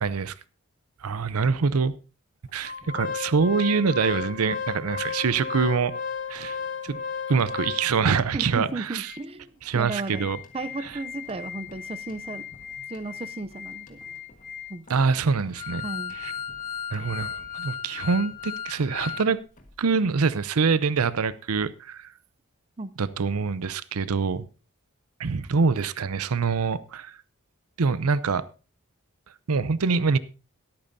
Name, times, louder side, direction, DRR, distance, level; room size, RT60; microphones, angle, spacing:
voice 1, 0.0-0.3 1.0-1.9 2.5-5.9 6.3-6.6 6.8-7.0 7.3-9.1 9.6-10.4 10.8-11.0 14.9-15.9 16.2-16.3 16.9-19.4 19.8-22.1 23.0-24.5 25.2-27.2 27.8-28.5 29.5-30.2, right 5 dB, 85° right, 0.6 m, -25 dB
Organ, 2.6-8.2 8.7-8.8 9.0-9.2 9.7-19.3 19.6-19.7, left 6 dB, 35° left, 1.6 m, -35 dB
voice 2, 8.3-12.4 12.9-14.0 14.7-14.9 15.8-16.1 22.8-22.9, right 2 dB, 25° right, 0.5 m, -34 dB
22.0 x 8.7 x 2.7 m
head